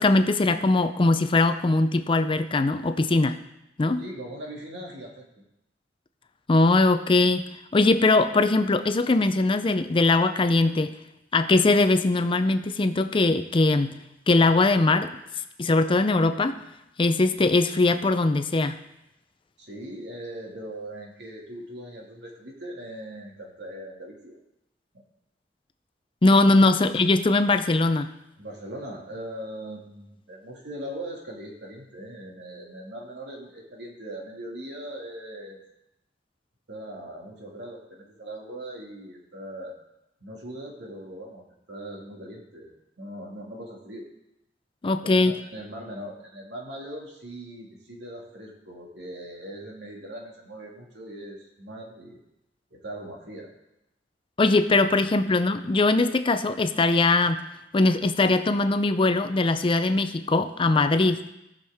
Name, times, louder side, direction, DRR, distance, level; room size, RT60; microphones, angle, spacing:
voice 1, 0.0-3.4 3.8-4.0 6.5-10.9 11.3-13.9 14.3-15.1 15.6-16.6 17.0-18.8 26.2-28.1 44.8-45.3 54.4-57.4 57.7-61.3, left 2 dB, 30° left, 9 dB, 0.5 m, -21 dB
voice 2, 4.0-5.4 19.6-24.4 28.4-35.6 36.7-39.7 40.2-44.1 45.0-52.2 52.7-53.5, right 1 dB, 70° right, -1 dB, 2.2 m, -40 dB
17.0 x 6.4 x 3.5 m, 0.87 s
head